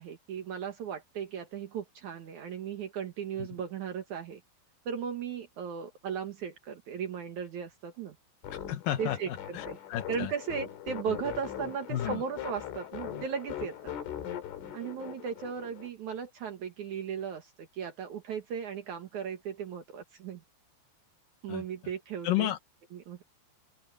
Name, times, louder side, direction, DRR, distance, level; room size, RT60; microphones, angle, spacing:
voice 1, 0.0-4.4 4.8-8.1 9.0-9.8 10.1-13.9 14.7-20.4 21.4-22.5 22.9-23.2, right 7 dB, 80° right, 1.7 m, -37 dB
sound 1, 8.4-15.9, left 10 dB, 75° left, 5.7 m, -40 dB
voice 2, 8.5-10.3 11.1-11.2 11.9-12.2 21.5-21.6 22.2-22.6, left 13 dB, 90° left, 1.9 m, -32 dB
open air
omnidirectional pair, 5.8 m